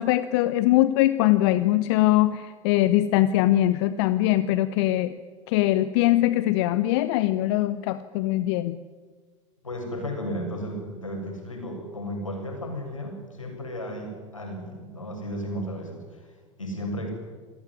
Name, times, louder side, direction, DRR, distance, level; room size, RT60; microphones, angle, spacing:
voice 1, 0.0-5.1 5.5-8.8, left 15 dB, 55° left, 14 dB, 1.0 m, -22 dB
voice 2, 9.6-17.1, equal, 85° left, 3 dB, 7.1 m, -34 dB
27.5 x 18.5 x 9.9 m, 1.6 s
figure-of-eight pair, 80°, 16 cm